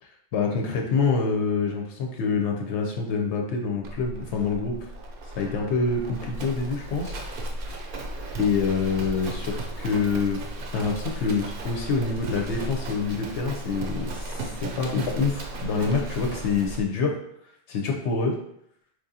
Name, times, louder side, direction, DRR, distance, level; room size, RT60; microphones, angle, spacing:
voice 1, 0.3-4.9 5.4-7.2 8.4-10.4 10.7-17.1 17.7-18.3, left 4 dB, 80° left, 1 dB, 0.9 m, -26 dB
Livestock farm animals working animals, 3.8-16.8, right 1 dB, 60° right, 0.7 m, -35 dB
3.7 x 3.1 x 2.7 m, 0.73 s
omnidirectional pair, 1.2 m